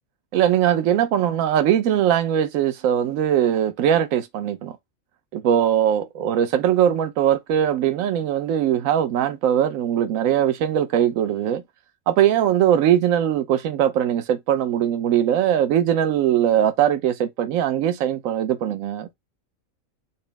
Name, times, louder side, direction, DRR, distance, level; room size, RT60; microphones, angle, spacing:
voice 1, 0.3-4.8 5.3-11.6 12.1-19.1, right 10 dB, 80° right, 1.0 m, -20 dB
4.1 x 2.1 x 3.2 m
omnidirectional pair, 1.4 m